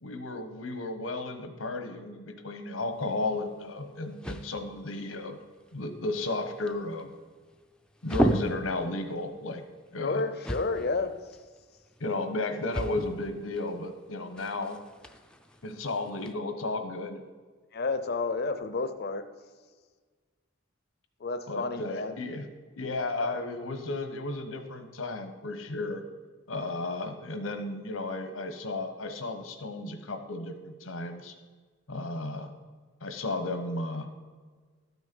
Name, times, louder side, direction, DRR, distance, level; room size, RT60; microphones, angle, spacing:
voice 1, 0.0-5.4 5.7-7.1 8.0-9.7 9.9-10.2 12.0-14.8 15.6-17.2 21.5-22.4 22.8-26.0 26.5-31.4 31.9-32.5 33.0-34.1, left 2 dB, 85° left, 8 dB, 1.1 m, -34 dB
sound 1, 2.9-16.3, right 1 dB, 5° left, 0.5 m, -37 dB
voice 2, 10.0-11.1 17.7-19.2 21.2-22.2 23.2-23.3, left 3 dB, 55° left, 10 dB, 0.6 m, -30 dB
12.0 x 6.3 x 5.3 m, 1.5 s
head